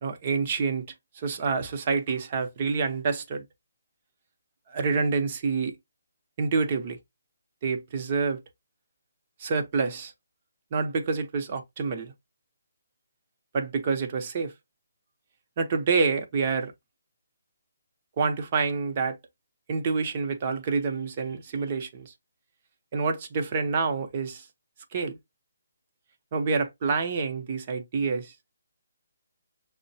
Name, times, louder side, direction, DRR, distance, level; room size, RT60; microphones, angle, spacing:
voice 1, 0.0-0.9 1.2-3.4 4.7-5.8 6.4-7.0 7.6-8.4 9.4-10.1 10.7-12.1 13.5-14.5 15.6-16.7 18.2-19.2 19.7-22.1 22.9-24.4 24.9-25.2 26.3-28.3, right 4 dB, 35° right, 0.8 m, -27 dB
6.2 x 2.1 x 2.7 m
hypercardioid pair, 155°, 0 cm